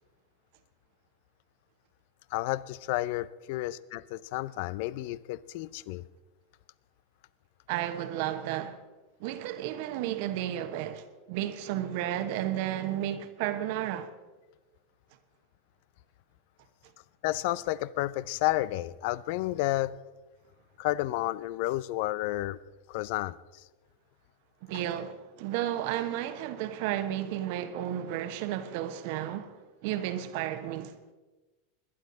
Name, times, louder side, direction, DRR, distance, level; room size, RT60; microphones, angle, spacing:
voice 1, 2.3-6.1 17.2-20.0 20.8-22.6 22.9-23.6, left 17 dB, 55° left, 0.4 m, -31 dB
voice 2, 7.7-8.8 9.2-14.1 24.6-31.0, right 12 dB, 55° right, 1.1 m, -33 dB
21.0 x 10.5 x 3.9 m
figure-of-eight pair, 85°, 0 cm